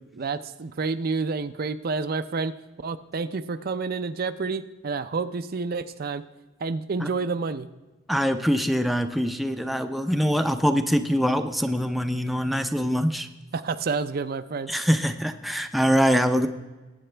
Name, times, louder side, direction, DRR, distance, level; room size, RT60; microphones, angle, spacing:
voice 1, 0.1-2.5 2.8-6.2 6.6-7.7 13.5-14.7, right 4 dB, 50° right, 11 dB, 0.5 m, -29 dB
voice 2, 8.1-13.3 14.7-16.5, equal, ahead, 7 dB, 0.5 m, -23 dB
19.5 x 8.7 x 3.3 m, 1.2 s
head